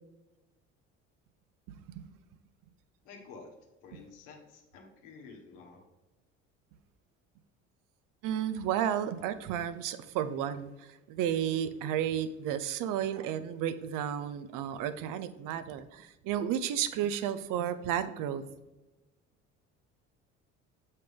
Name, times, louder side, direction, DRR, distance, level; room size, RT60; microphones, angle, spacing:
voice 1, 1.7-2.1 8.2-18.5, right 10 dB, 60° right, 13 dB, 0.7 m, -32 dB
voice 2, 3.0-3.5 3.8-5.9, left 4 dB, 75° left, 2 dB, 1.5 m, -50 dB
7.7 x 5.5 x 3.5 m, 1.1 s
hypercardioid pair, 65°, 35 cm